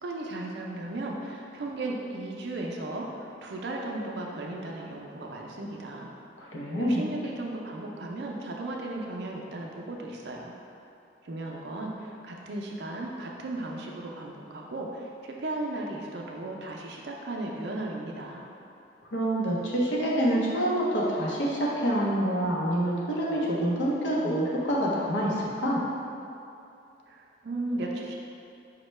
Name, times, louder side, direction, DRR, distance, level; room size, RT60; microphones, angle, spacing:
voice 1, 0.0-6.1 6.8-10.5 11.2-18.4 27.1-28.1, right 2 dB, 60° right, -1 dB, 0.4 m, -36 dB
voice 2, 6.4-7.0 19.1-25.8, right 1 dB, 80° left, -5 dB, 0.7 m, -27 dB
5.3 x 2.1 x 3.1 m, 2.7 s
head